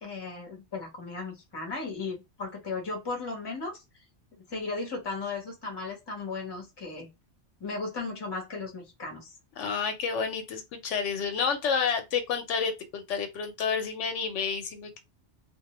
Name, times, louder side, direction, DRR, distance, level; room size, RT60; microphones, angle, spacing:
voice 1, 0.0-3.8 4.5-7.1 7.6-9.3, left 3 dB, 25° left, 0.8 m, -36 dB
voice 2, 9.6-15.0, left 6 dB, 90° left, 0.9 m, -30 dB
2.2 x 2.1 x 2.9 m
omnidirectional pair, 1.2 m